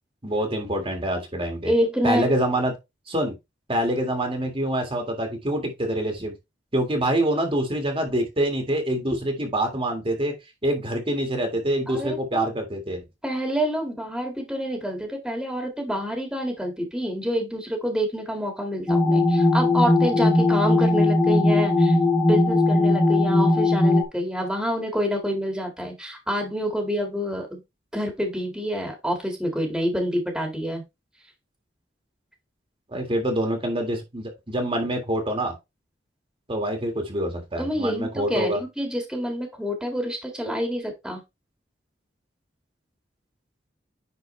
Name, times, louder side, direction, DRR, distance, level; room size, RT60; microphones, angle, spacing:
voice 1, 0.2-1.7 2.0-2.7 3.1-3.3 3.7-6.3 6.7-10.3 10.6-13.0 32.9-35.5 36.5-38.6, right 1 dB, 30° right, 1.8 m, -25 dB
voice 2, 1.6-2.2 11.9-12.4 13.2-22.0 22.3-27.6 27.9-30.8 37.6-41.2, equal, 5° right, 1.9 m, -27 dB
sound 1, 18.9-24.0, left 2 dB, 15° left, 1.4 m, -19 dB
10.0 x 4.1 x 3.2 m
head